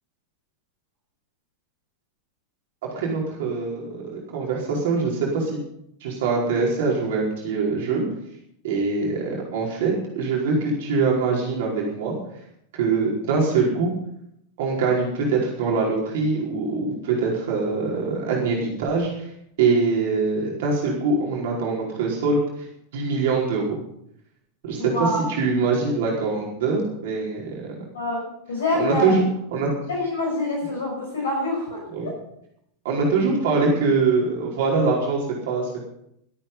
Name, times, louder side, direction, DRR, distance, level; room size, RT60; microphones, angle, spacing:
voice 1, 2.9-5.5 6.0-8.0 8.6-12.1 12.7-13.9 14.6-19.3 19.6-22.6 22.9-23.8 24.6-27.7 28.8-29.2 29.5-29.7 31.9-32.1 32.8-35.9, right 4 dB, 55° right, -2 dB, 4.9 m, -23 dB
voice 2, 24.8-25.3 27.9-28.2 28.5-29.2 29.9-31.8, left 2 dB, 60° left, -2 dB, 6.1 m, -25 dB
23.0 x 8.9 x 5.6 m, 0.76 s
figure-of-eight pair, 90°, 0 cm